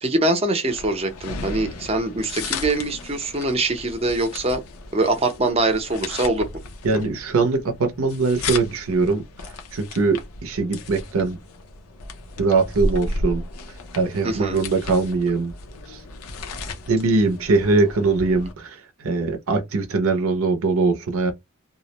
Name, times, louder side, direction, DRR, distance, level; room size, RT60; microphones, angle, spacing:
voice 1, 0.0-4.6 4.9-6.5 14.2-14.6, right 2 dB, 25° right, 0.6 m, -23 dB
sound 1, 0.7-18.5, left 2 dB, 90° left, 0.6 m, -34 dB
voice 2, 6.8-9.2 9.7-11.4 12.4-13.4 13.9-15.5 15.9-16.0 16.9-21.3, right 3 dB, 75° right, 0.6 m, -21 dB
2.4 x 2.1 x 2.8 m
head